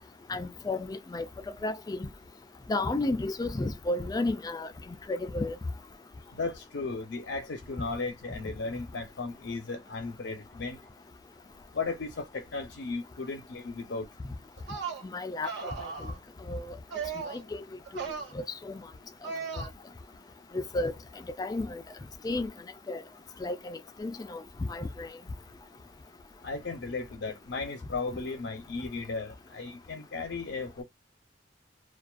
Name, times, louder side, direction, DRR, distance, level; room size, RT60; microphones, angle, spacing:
voice 1, 0.3-1.3 1.6-2.1 2.7-5.6 15.0-15.7 16.5-16.8 17.3-17.6 17.9-18.0 18.3-18.8 19.6-19.7 20.5-20.9 21.4-21.8 22.2-22.5 22.9-23.0 23.4-24.4 24.7-25.1, left 2 dB, 20° left, 0.3 m, -32 dB
voice 2, 6.3-10.8 11.7-14.1 26.4-30.8, left 3 dB, 85° left, 0.6 m, -35 dB
sound 1, 14.6-15.0 15.4-16.2 16.9-17.4 17.9-18.3 19.2-19.7, right 5 dB, 70° right, 1.0 m, -36 dB
2.4 x 2.3 x 2.3 m
head